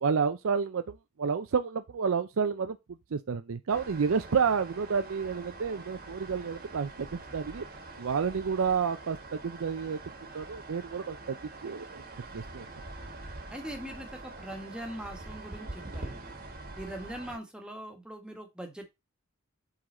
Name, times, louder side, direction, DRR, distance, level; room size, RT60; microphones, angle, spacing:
voice 1, 0.0-2.8 3.1-7.6 8.0-9.2 9.4-10.0 10.3-11.4 11.6-12.0 12.3-12.7, right 6 dB, 70° right, 0.5 m, -30 dB
sound 1, 3.7-17.4, right 2 dB, 45° right, 1.3 m, -45 dB
voice 2, 13.5-16.3 16.8-18.9, right 1 dB, 5° right, 1.4 m, -41 dB
7.8 x 3.9 x 4.2 m
head